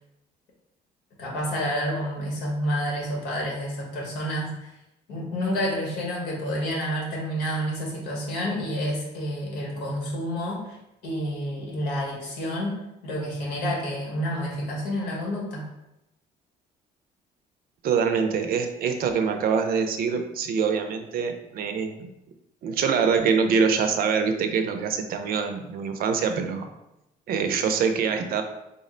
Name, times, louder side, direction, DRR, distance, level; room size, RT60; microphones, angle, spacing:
voice 1, 1.2-4.7 5.1-10.8 11.0-15.7, equal, 85° left, -2 dB, 1.3 m, -29 dB
voice 2, 17.8-22.1 22.6-26.7 27.3-28.4, right 6 dB, 60° right, 6 dB, 0.5 m, -24 dB
3.6 x 2.1 x 3.8 m, 0.91 s
cardioid pair, 110°, 17 cm